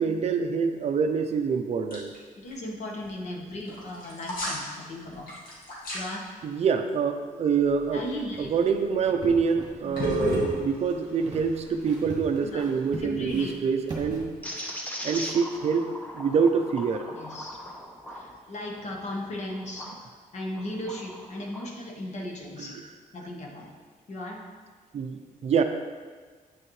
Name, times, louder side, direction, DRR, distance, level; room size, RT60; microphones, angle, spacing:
voice 1, 0.0-2.1 3.6-3.7 6.4-8.0 8.4-14.3 15.0-15.9 16.1-17.1 22.6-22.7 24.9-25.6, right 6 dB, 45° right, 6 dB, 0.5 m, -26 dB
sound 1, 1.9-2.2 2.5-2.6 3.7-4.7 5.1-6.0 8.7-8.9 9.9-12.8, equal, 70° left, 2.0 m, -31 dB
voice 2, 2.3-5.3 5.9-6.4 7.9-8.5 9.8-10.1 12.4-12.7 13.0-13.5 17.1-17.6 18.1-19.8 20.3-22.8 23.1-23.7 24.1-24.5, left 1 dB, 50° left, 0 dB, 1.2 m, -36 dB
sound 2, 7.6-14.5, right 2 dB, 30° right, 1.6 m, -41 dB
sound 3, 14.4-20.0 20.5-21.7, equal, 10° left, 0.8 m, -39 dB
9.2 x 6.3 x 3.1 m, 1.5 s
wide cardioid pair, 165°, 15 cm